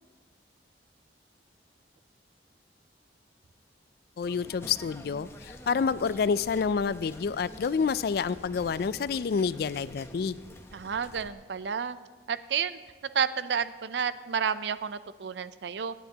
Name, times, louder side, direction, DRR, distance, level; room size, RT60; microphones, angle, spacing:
voice 1, 4.2-10.4, left 5 dB, 55° left, 17 dB, 0.3 m, -28 dB
sound 1, 4.2-11.3, left 1 dB, 15° left, 0.7 m, -48 dB
voice 2, 10.7-12.0 12.3-12.8 13.1-15.9, right 7 dB, 75° right, 14 dB, 0.5 m, -30 dB
25.5 x 9.2 x 2.9 m, 1.4 s
head